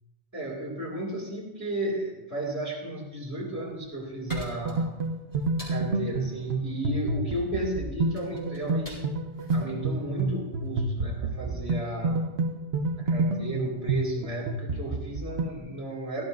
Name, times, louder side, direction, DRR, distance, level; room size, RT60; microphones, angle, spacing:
voice 1, 0.3-5.0 5.6-9.1 9.5-12.4 13.0-16.2, right 1 dB, 15° right, -3 dB, 2.4 m, -34 dB
sound 1, 3.6-10.8, left 1 dB, 30° left, 5.3 m, -47 dB
sound 2, 4.3-15.6, right 2 dB, 55° right, 1.1 m, -29 dB
17.5 x 14.0 x 2.6 m, 0.99 s
omnidirectional pair, 1.3 m